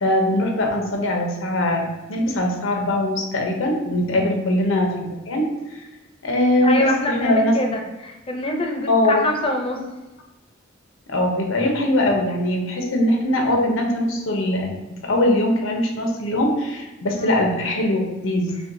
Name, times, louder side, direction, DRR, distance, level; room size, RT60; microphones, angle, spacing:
voice 1, 0.0-5.8 6.2-7.6 8.9-9.2 11.1-18.5, left 1 dB, 85° left, 1 dB, 0.8 m, -21 dB
voice 2, 6.6-9.8 17.1-17.4, left 1 dB, 30° left, 2 dB, 0.6 m, -26 dB
5.7 x 2.3 x 2.6 m, 1.1 s
head